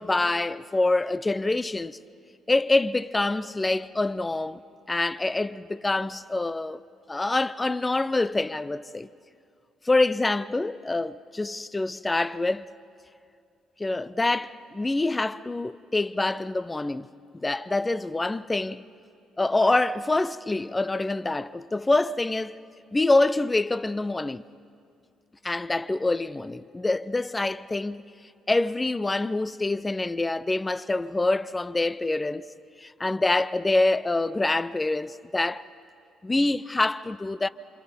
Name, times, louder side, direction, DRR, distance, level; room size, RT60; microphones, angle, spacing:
voice 1, 0.0-2.0 2.5-4.6 4.9-6.8 7.1-9.1 9.8-12.7 13.8-17.1 17.4-18.8 19.4-22.6 22.9-24.4 25.4-28.0 28.5-32.5 32.8-35.6 36.2-37.5, left 2 dB, 20° left, 0.6 m, -26 dB
28.0 x 27.0 x 5.3 m
figure-of-eight pair, 45°, 0 cm